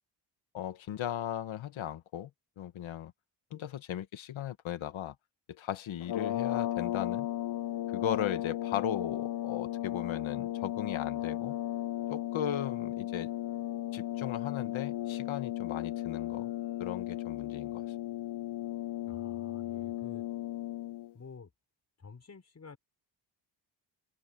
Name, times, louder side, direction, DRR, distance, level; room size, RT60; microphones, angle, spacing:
voice 1, 0.5-2.3 2.6-3.1 3.5-5.2 5.5-7.3 7.9-11.6 12.1-13.3 13.9-16.5 16.8-17.8, left 10 dB, 85° left, 1.8 m, -37 dB
sound 1, 6.0-21.1, left 14 dB, 60° left, 0.7 m, -35 dB
voice 2, 19.0-20.3 21.1-21.5 22.0-22.8, left 5 dB, 35° left, 5.9 m, -50 dB
wide cardioid pair, 150°, 46 cm